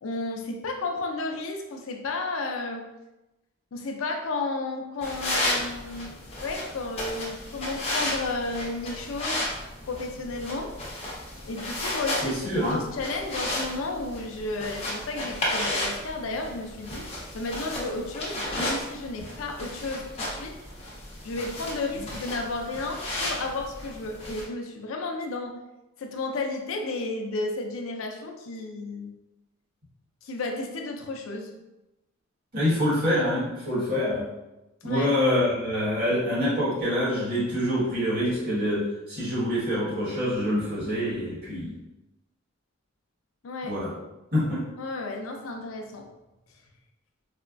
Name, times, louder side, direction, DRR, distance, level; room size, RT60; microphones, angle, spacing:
voice 1, 0.0-2.8 3.7-6.1 6.4-9.5 9.8-10.7 11.4-12.4 12.7-17.1 17.3-20.5 21.2-25.6 26.0-29.1 30.2-31.5 34.8-35.1 43.4-43.8 44.8-46.1, left 3 dB, 70° left, 3 dB, 0.5 m, -33 dB
sound 1, 5.0-24.4, left 1 dB, 30° left, 0.8 m, -33 dB
voice 2, 12.2-12.8 21.9-22.1 32.5-34.3 34.8-41.7 43.7-43.9 44.3-44.6, left 1 dB, 45° right, -7 dB, 1.4 m, -26 dB
4.2 x 2.2 x 2.4 m, 0.98 s
head